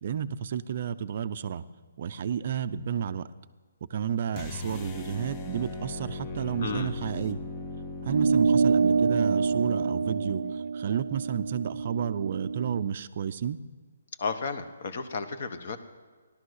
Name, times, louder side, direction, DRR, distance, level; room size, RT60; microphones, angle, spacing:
voice 1, 0.0-1.6 2.0-3.2 3.9-7.4 8.0-13.6, right 8 dB, 35° right, 11 dB, 0.5 m, -31 dB
sound 1, 4.3-10.6, left 2 dB, 15° left, 0.6 m, -38 dB
voice 2, 6.6-6.9 14.2-15.8, left 4 dB, 40° left, 9 dB, 1.2 m, -33 dB
sound 2, 8.1-12.9, right 5 dB, 85° right, 0.3 m, -26 dB
16.0 x 12.0 x 6.4 m, 1.5 s
hypercardioid pair, 175°, 0 cm